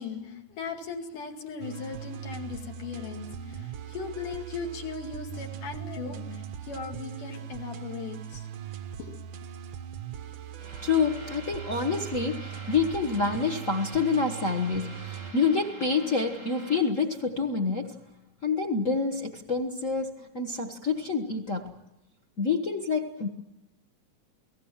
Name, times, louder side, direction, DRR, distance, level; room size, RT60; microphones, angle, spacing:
voice 1, 0.0-8.5 9.0-9.2, left 5 dB, 75° left, 3.9 m, -38 dB
sound 1, 1.6-15.3, right 10 dB, 90° right, 1.0 m, -40 dB
voice 2, 10.6-17.9 18.4-21.7 22.4-23.3, left 4 dB, 45° left, 1.0 m, -27 dB
29.5 x 18.5 x 7.4 m
omnidirectional pair, 3.7 m